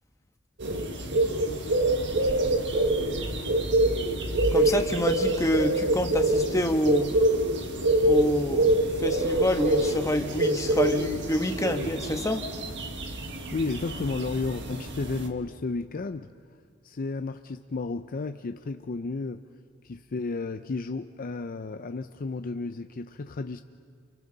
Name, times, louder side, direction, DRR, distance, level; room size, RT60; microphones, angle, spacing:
sound 1, 0.6-15.3, right 1 dB, 55° right, 1.7 m, -26 dB
voice 1, 4.5-7.1 8.0-12.4, left 1 dB, 15° left, 5 dB, 1.2 m, -27 dB
voice 2, 13.5-16.3 16.8-19.4 19.8-23.6, left 3 dB, 40° left, 8 dB, 0.5 m, -32 dB
29.5 x 29.0 x 4.0 m, 2.1 s
head